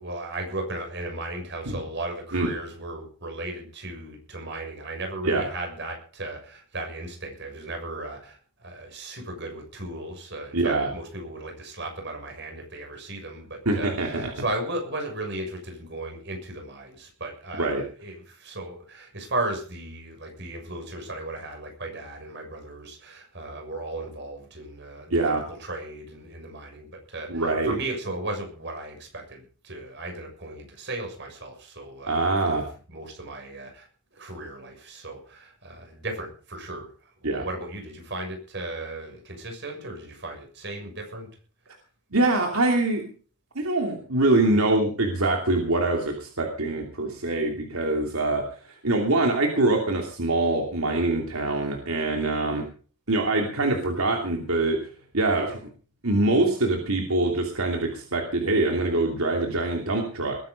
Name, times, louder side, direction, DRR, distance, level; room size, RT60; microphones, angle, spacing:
voice 1, 0.0-32.6 32.9-36.9 37.2-41.3, right 2 dB, 55° right, 3 dB, 6.8 m, -36 dB
voice 2, 10.5-10.9 13.6-14.3 17.6-17.8 25.1-25.4 27.3-27.7 32.1-32.6 37.2-37.4 42.1-43.0 43.5-48.4 48.8-52.7 53.1-54.8 55.1-55.6 56.0-60.4, right 2 dB, 85° right, 2 dB, 2.9 m, -24 dB
20.5 x 10.0 x 5.3 m, 0.41 s
head